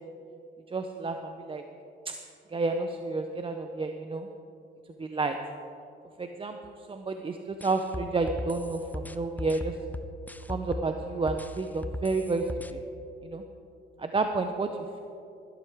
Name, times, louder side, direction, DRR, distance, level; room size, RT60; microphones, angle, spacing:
voice 1, 0.7-1.6 2.5-4.3 5.0-5.4 6.2-9.7 10.5-12.8 13.2-13.4 14.0-14.7, right 3 dB, 25° right, 5 dB, 0.7 m, -30 dB
sound 1, 7.6-10.9 11.3-12.7, left 1 dB, 10° left, 0.5 m, -37 dB
14.5 x 12.5 x 3.6 m, 2.6 s
cardioid pair, 90°, 20 cm